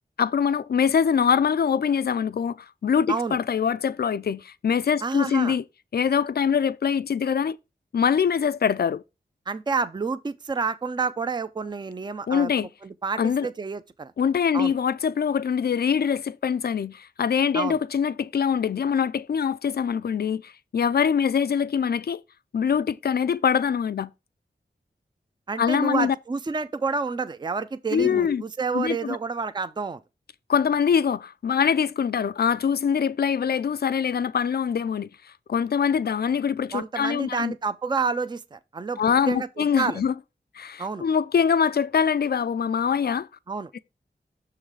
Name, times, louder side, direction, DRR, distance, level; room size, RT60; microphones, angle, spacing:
voice 1, 0.2-5.6 5.9-7.6 7.9-9.0 12.3-12.7 13.2-13.5 14.2-22.2 22.5-24.1 25.6-26.2 27.9-28.4 28.7-29.2 30.5-35.1 35.5-37.5 39.0-40.1 40.6-43.3 43.7-43.8, left 7 dB, 60° left, 0.4 m, -23 dB
voice 2, 5.0-5.6 9.5-12.5 12.8-14.1 14.5-14.7 17.5-17.8 25.5-30.0 36.7-40.0 40.8-41.0 43.5-43.7, right 4 dB, 25° right, 0.4 m, -29 dB
6.3 x 3.9 x 4.7 m
wide cardioid pair, 55°, 18 cm